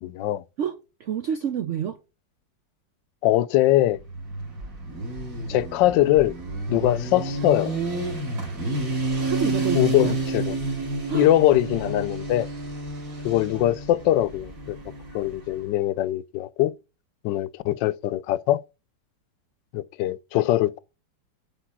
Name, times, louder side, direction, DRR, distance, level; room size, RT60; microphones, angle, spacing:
voice 1, 0.0-0.4 3.2-4.0 5.5-6.3 6.7-7.8 9.7-10.6 11.1-12.5 13.2-14.8 15.1-16.7 17.2-18.6 19.7-20.8, left 14 dB, 75° left, 1.2 m, -22 dB
voice 2, 0.6-2.0 9.2-10.1 11.1-11.3, right 8 dB, 80° right, 0.6 m, -28 dB
Motorcycle, 3.9-15.6, right 2 dB, 45° right, 2.7 m, -30 dB
9.1 x 3.7 x 6.0 m
omnidirectional pair, 2.0 m